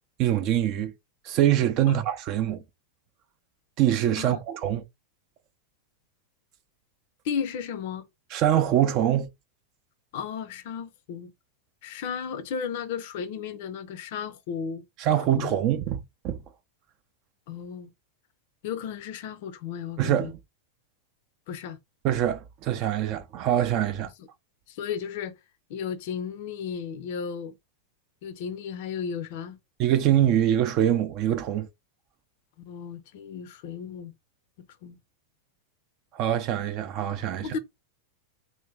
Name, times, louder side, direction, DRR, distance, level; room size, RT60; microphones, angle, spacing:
voice 1, 0.2-0.9 1.2-2.6 3.8-4.8 8.3-9.3 15.0-16.4 20.0-20.4 22.0-24.1 29.8-31.7 36.1-37.6, right 11 dB, 40° right, 0.5 m, -24 dB
voice 2, 7.2-8.1 10.1-11.3 11.8-14.8 15.3-15.5 17.5-17.9 18.6-20.3 21.5-21.8 24.7-25.3 25.7-27.5 28.2-29.6 32.7-34.1 34.8-35.0 37.4-37.6, left 7 dB, 50° left, 0.5 m, -34 dB
2.9 x 2.7 x 3.3 m
figure-of-eight pair, 90°, 0 cm